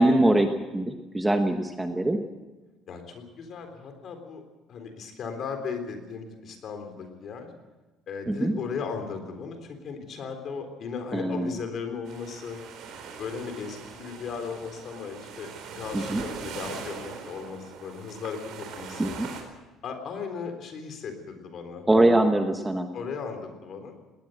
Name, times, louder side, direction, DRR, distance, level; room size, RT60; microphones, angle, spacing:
voice 1, 0.0-2.2 8.3-8.5 11.1-11.5 15.9-16.2 19.0-19.3 21.9-22.9, right 1 dB, 5° right, 5 dB, 1.0 m, -23 dB
voice 2, 2.9-4.4 4.7-7.5 8.1-12.6 13.2-19.2 19.8-22.2 22.9-23.9, left 5 dB, 40° left, 6 dB, 3.8 m, -36 dB
sound 1, 12.1-19.4, right 6 dB, 50° right, 4.3 m, -41 dB
21.0 x 18.5 x 7.9 m, 1.2 s
cardioid pair, 175°, 0 cm